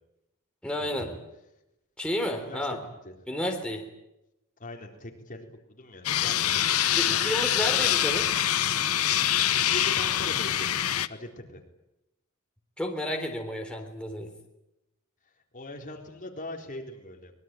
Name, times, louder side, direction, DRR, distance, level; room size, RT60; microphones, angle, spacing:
voice 1, 0.6-1.1 2.0-2.8 3.3-3.8 6.9-8.3 12.8-14.3, equal, 5° left, 2 dB, 3.5 m, -31 dB
voice 2, 2.3-3.1 4.6-6.7 7.0-7.9 9.5-10.7 11.1-11.6 15.2-17.3, left 1 dB, 35° left, 2 dB, 3.9 m, -42 dB
sound 1, 6.0-11.1, left 11 dB, 75° left, 1.0 m, -25 dB
24.5 x 22.0 x 9.2 m, 0.90 s
head